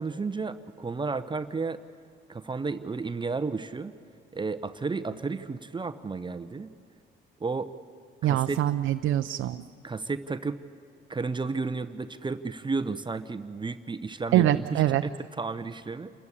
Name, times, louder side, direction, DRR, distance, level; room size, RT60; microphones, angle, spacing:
voice 1, 0.0-1.8 2.3-3.9 4.3-6.7 7.4-7.7 8.2-8.7 9.8-10.6 11.1-16.1, right 4 dB, 25° right, 11 dB, 0.7 m, -32 dB
voice 2, 8.2-9.6 14.3-15.0, right 13 dB, 80° right, 8 dB, 0.6 m, -24 dB
28.0 x 14.0 x 9.9 m, 2.2 s
cardioid pair, 90°, 20 cm